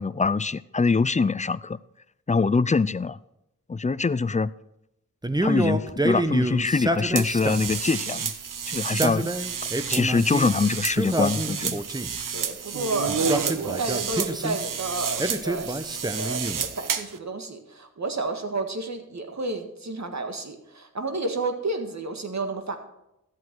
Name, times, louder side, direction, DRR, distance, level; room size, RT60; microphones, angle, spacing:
voice 1, 0.0-1.8 2.3-3.2 3.7-4.5 5.4-8.3 8.7-9.3 9.9-11.8, left 4 dB, 25° left, 18 dB, 0.4 m, -24 dB
Male speech man speaking, 5.2-7.8 8.8-10.5 10.9-12.2 13.1-14.6 15.2-16.7, right 1 dB, 10° right, 0.9 m, -28 dB
sound 1, 7.1-17.2, right 6 dB, 75° right, 0.8 m, -30 dB
voice 2, 12.3-22.8, right 3 dB, 55° right, 6 dB, 1.7 m, -31 dB
13.0 x 8.7 x 4.6 m, 0.86 s
cardioid pair, 50°, 33 cm